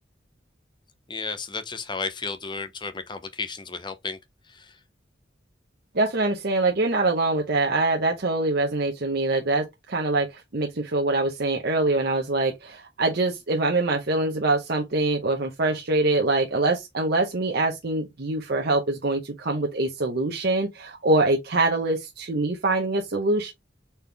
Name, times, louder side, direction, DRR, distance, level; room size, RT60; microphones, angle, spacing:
voice 1, 1.1-4.2 4.5-4.8, left 4 dB, 25° left, 0.7 m, -33 dB
voice 2, 5.9-23.5, right 2 dB, 60° right, 0.8 m, -24 dB
4.3 x 3.6 x 3.4 m
head